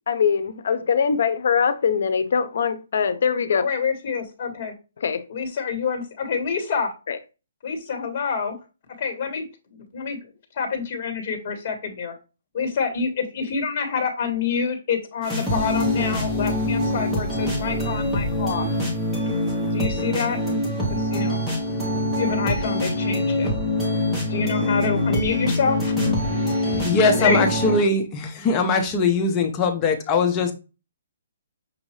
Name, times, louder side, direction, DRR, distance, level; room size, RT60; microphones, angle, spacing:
voice 1, 0.1-3.6 5.0-5.2 7.1-7.2, left 6 dB, 60° left, 0.6 m, -22 dB
voice 2, 3.6-4.7 5.3-6.9 7.6-8.6 9.0-9.4 9.7-10.2 10.5-12.1 12.5-18.7 19.7-20.4 20.9-21.4 22.2-23.5 24.3-25.9 27.2-27.5, left 5 dB, 35° left, 1.5 m, -27 dB
sound 1, 15.2-27.8, left 1 dB, 5° right, 1.0 m, -24 dB
voice 3, 26.1-30.5, left 3 dB, 20° left, 0.6 m, -21 dB
6.1 x 2.6 x 3.1 m
hypercardioid pair, 165°, 0 cm